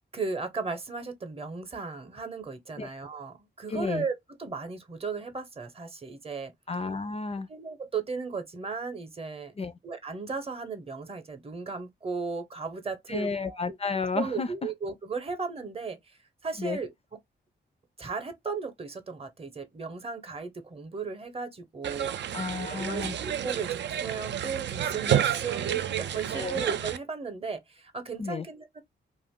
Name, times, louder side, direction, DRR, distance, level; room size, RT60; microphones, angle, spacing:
voice 1, 0.1-6.5 7.5-9.5 9.8-13.8 14.1-16.9 18.0-22.4 22.6-28.8, right 4 dB, 30° right, 0.8 m, -36 dB
voice 2, 3.7-4.0 6.7-7.5 9.6-9.7 13.1-14.5 16.6-16.8 22.3-23.2 26.3-26.6 28.2-28.5, left 4 dB, 30° left, 0.4 m, -31 dB
sound 1, 21.8-27.0, right 10 dB, 65° right, 0.4 m, -30 dB
2.5 x 2.4 x 3.5 m
cardioid pair, 90°, 19 cm